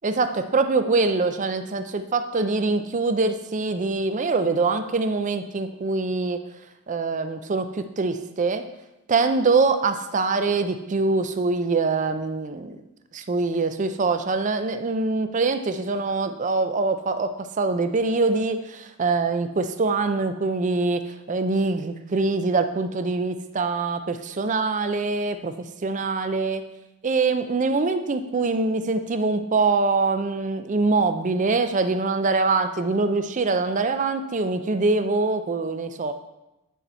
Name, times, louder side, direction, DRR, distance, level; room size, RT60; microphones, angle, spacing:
voice 1, 0.0-6.4 6.9-8.7 9.1-12.8 13.1-25.5 25.8-26.6 27.0-36.1, right 3 dB, 35° right, 9 dB, 0.4 m, -24 dB
9.3 x 4.1 x 4.4 m, 0.96 s
head